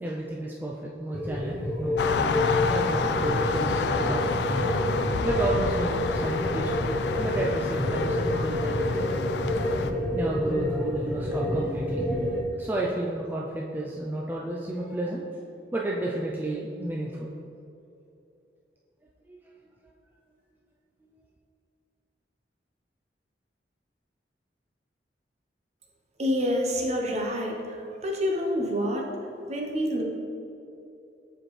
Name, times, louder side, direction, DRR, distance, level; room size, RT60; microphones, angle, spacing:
voice 1, 0.0-4.4 5.2-6.8 7.2-8.7 10.1-12.1 12.6-15.3 15.7-17.3 19.3-19.4, right 1 dB, 10° right, -3 dB, 0.3 m, -32 dB
sound 1, 1.1-12.4, left 1 dB, 5° left, 0.8 m, -28 dB
sound 2, 2.0-9.9, left 4 dB, 70° left, 0.3 m, -29 dB
voice 2, 26.2-27.8 28.0-29.1 29.5-30.0, equal, 40° right, 0 dB, 0.8 m, -27 dB
7.5 x 4.4 x 3.1 m, 2.8 s
head